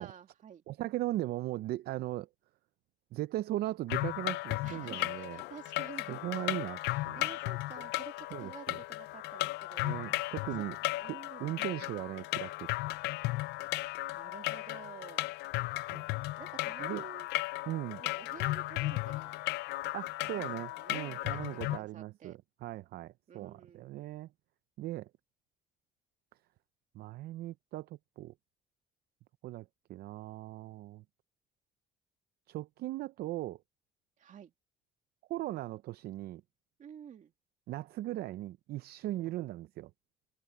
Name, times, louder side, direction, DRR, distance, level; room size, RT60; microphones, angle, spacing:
voice 1, 0.0-0.6 4.6-6.2 6.8-10.0 10.6-10.7 11.0-11.5 14.1-15.3 16.4-17.3 18.0-19.3 20.2-21.2 21.8-22.4 23.3-24.0 34.2-34.5 36.8-37.3, right 8 dB, 50° right, 2.5 m, -51 dB
voice 2, 0.7-2.3 3.1-5.4 6.1-7.2 8.3-8.8 9.8-10.8 11.0-12.7 15.9-16.0 16.8-17.1 17.7-18.0 19.9-24.3 24.8-25.1 26.9-28.3 29.4-31.0 32.5-33.6 35.3-36.4 37.7-39.9, right 15 dB, 70° right, 0.5 m, -38 dB
sound 1, 3.9-21.8, left 19 dB, 85° left, 0.6 m, -35 dB
cardioid pair, 110°, 17 cm